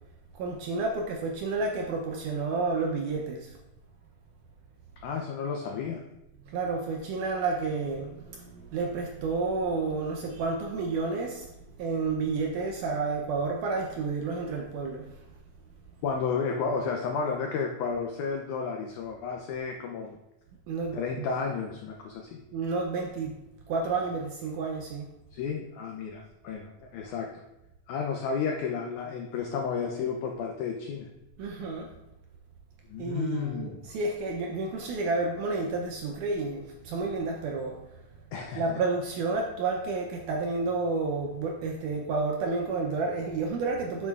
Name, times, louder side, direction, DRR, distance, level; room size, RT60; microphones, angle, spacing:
voice 1, 0.3-3.5 6.5-11.5 11.8-15.1 20.7-21.2 22.5-23.3 23.7-25.1 31.4-31.9 33.0-37.8 38.5-44.1, right 3 dB, 80° right, 1 dB, 1.9 m, -30 dB
voice 2, 5.0-6.0 16.0-20.2 20.9-22.4 25.3-27.4 27.9-31.1 32.9-33.8 38.3-38.8, left 5 dB, 85° left, 2 dB, 1.7 m, -32 dB
8.4 x 6.5 x 2.4 m, 0.92 s
omnidirectional pair, 4.2 m